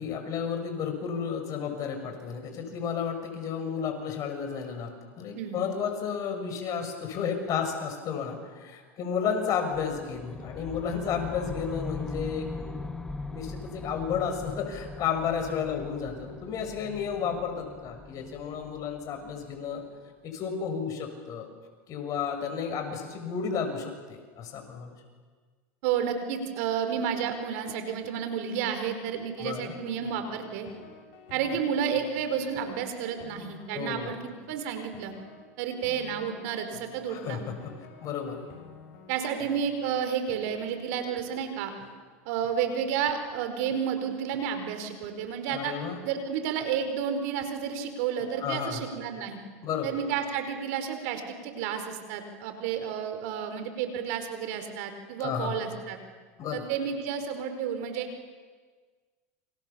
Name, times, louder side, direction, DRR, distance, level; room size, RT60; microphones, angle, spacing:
voice 1, 0.0-12.8 13.3-19.8 20.3-21.5 21.9-25.0 29.4-29.7 33.7-34.2 37.1-37.7 38.0-38.5 45.5-46.0 48.4-48.8 49.6-50.0 55.2-55.6 56.4-56.7, left 7 dB, 45° left, 5 dB, 6.5 m, -32 dB
sound 1, 9.7-19.8, left 3 dB, 5° left, 1.7 m, -40 dB
voice 2, 25.8-30.7 31.3-35.1 35.6-37.4 39.1-41.7 42.2-45.7 46.0-49.4 49.8-56.0 56.5-58.1, right 8 dB, 70° right, 7 dB, 4.7 m, -31 dB
sound 2, 29.7-41.3 41.8-41.9 42.4-42.6 43.1-43.2 43.7-43.8 44.3-44.5 45.0-45.1 45.8-46.0 46.6-46.7 47.4-47.5 48.2-48.3, left 6 dB, 65° left, 6.8 m, -50 dB
29.0 x 26.5 x 7.1 m, 1.5 s
hypercardioid pair, 105°, 8 cm